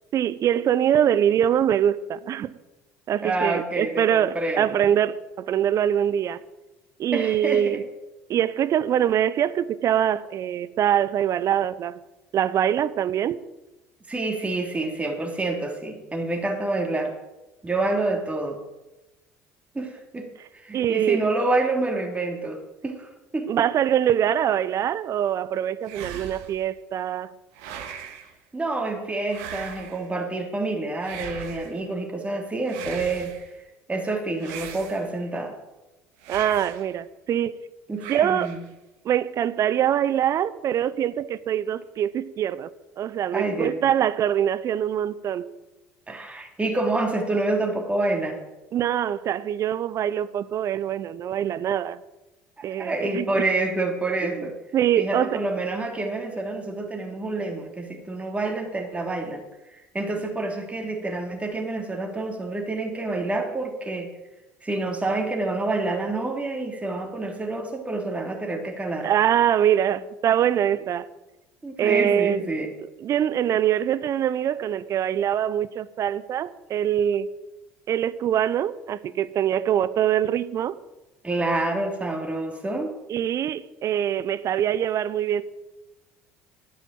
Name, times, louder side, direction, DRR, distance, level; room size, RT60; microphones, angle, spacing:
voice 1, 0.1-2.6 3.1-6.4 7.0-7.8 8.3-12.0 12.3-13.4 20.7-21.3 23.5-27.3 36.3-37.6 38.1-38.5 39.0-42.7 43.0-45.5 48.7-52.0 52.6-53.4 54.2-54.5 54.7-55.4 69.0-71.1 71.8-72.4 72.8-77.3 77.9-80.8 83.1-85.4, right 10 dB, 45° right, 17 dB, 0.8 m, -23 dB
voice 2, 3.2-4.9 7.1-7.8 14.1-17.1 17.6-18.6 19.7-20.3 20.6-23.7 28.5-33.3 33.9-35.5 37.9-38.6 43.3-43.8 46.1-48.4 52.6-54.6 55.0-59.4 59.7-64.1 64.6-69.1 71.6-72.7 81.2-82.9, right 2 dB, 15° right, 2 dB, 3.2 m, -28 dB
sound 1, 25.8-26.6 27.5-28.3 29.3-30.1 31.0-31.8 32.6-33.5 34.4-35.3 36.2-36.9 38.0-38.7, right 8 dB, 70° right, 1.8 m, -39 dB
12.0 x 9.1 x 7.7 m, 1.0 s
hypercardioid pair, 65°, 7 cm